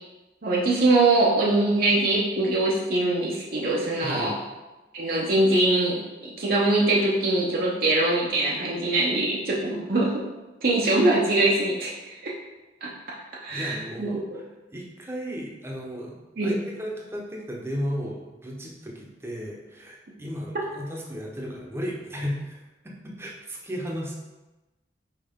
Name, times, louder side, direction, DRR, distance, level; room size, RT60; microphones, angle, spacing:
voice 1, 0.4-4.3 4.9-10.2 10.6-12.3 12.8-13.2 13.4-14.4 16.4-16.6, right 2 dB, 55° right, -4 dB, 0.8 m, -23 dB
voice 2, 4.0-4.4 13.2-14.4 14.7-16.2 16.4-24.2, equal, 15° right, -2 dB, 0.9 m, -35 dB
5.6 x 4.7 x 3.6 m, 1.1 s
head